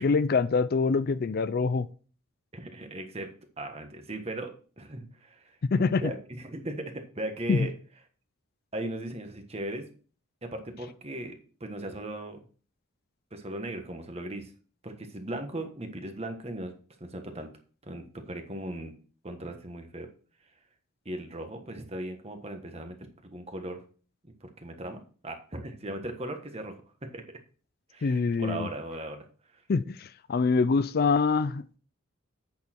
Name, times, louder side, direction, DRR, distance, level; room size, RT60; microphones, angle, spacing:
voice 1, 0.0-1.9 5.7-6.1 7.5-7.7 28.0-28.7 29.7-31.8, left 4 dB, 45° left, 0.4 m, -25 dB
voice 2, 2.5-3.3 3.6-5.6 6.0-7.7 8.7-9.9 10.4-12.4 13.3-14.5 14.8-16.7 17.0-17.5 17.8-18.9 19.2-20.1 21.0-23.8 24.2-27.4 27.9-29.3, right 1 dB, 30° right, 1.3 m, -38 dB
8.5 x 6.5 x 4.4 m
head